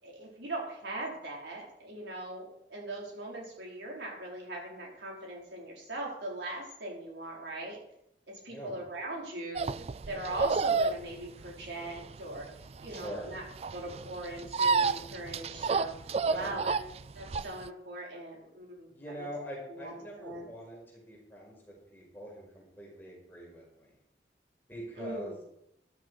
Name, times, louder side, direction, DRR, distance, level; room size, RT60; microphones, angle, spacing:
voice 1, 0.0-7.8 8.4-9.7 10.1-12.5 12.8-13.4 13.7-16.0 16.3-16.8 17.1-18.9 19.2-19.3 19.7-20.5 25.0-25.4, right 2 dB, 85° right, -2 dB, 4.8 m, -40 dB
sound 1, 9.6-17.7, right 4 dB, 35° right, 0.4 m, -31 dB
voice 2, 12.9-13.3 16.2-16.5 18.9-23.9 24.7-25.4, equal, 10° left, -3 dB, 5.2 m, -44 dB
13.5 x 12.5 x 4.8 m, 0.80 s
head